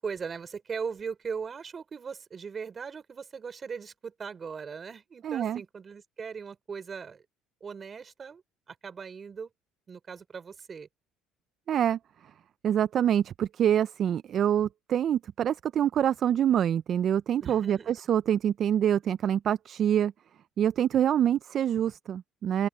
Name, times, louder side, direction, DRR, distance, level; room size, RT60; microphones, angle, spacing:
voice 1, 0.0-7.2 7.6-8.4 8.7-9.5 9.9-10.9 17.4-17.9, right 6 dB, 30° right, 3.8 m, -39 dB
voice 2, 5.2-5.6 11.7-12.0 12.6-20.1 20.6-22.7, right 10 dB, 50° right, 0.4 m, -26 dB
open air
cardioid pair, 115°, 0 cm